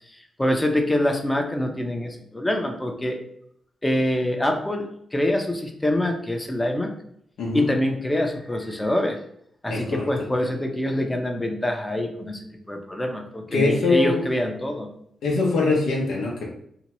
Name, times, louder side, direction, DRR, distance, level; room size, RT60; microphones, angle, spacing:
voice 1, 0.1-3.2 3.8-6.9 7.5-9.2 9.6-12.4 12.7-14.9, left 1 dB, 15° left, 3 dB, 0.6 m, -25 dB
voice 2, 9.7-10.1 13.5-14.2 15.2-16.5, left 3 dB, 80° left, -2 dB, 0.7 m, -22 dB
2.8 x 2.2 x 3.0 m, 0.71 s
supercardioid pair, 45°, 0 cm